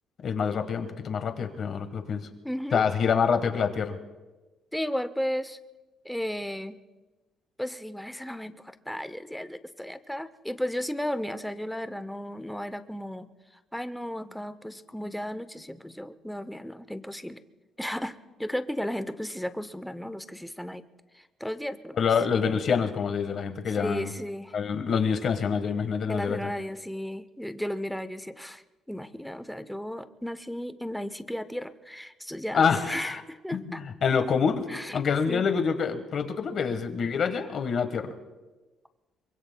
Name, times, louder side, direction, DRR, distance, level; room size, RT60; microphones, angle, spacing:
voice 1, 0.2-2.3 2.7-4.0 22.0-24.1 24.5-26.5 32.5-33.2 33.5-34.7 34.9-38.1, left 6 dB, 45° left, 8 dB, 1.3 m, -26 dB
voice 2, 2.4-2.8 4.7-5.6 6.0-6.8 7.6-13.3 13.7-17.4 17.8-20.8 21.1-22.0 23.8-24.6 26.1-28.6 28.9-33.8 34.7-35.0 35.3-35.4, equal, ahead, 11 dB, 0.6 m, -34 dB
25.5 x 23.5 x 2.2 m, 1.2 s
cardioid pair, 155°, 0 cm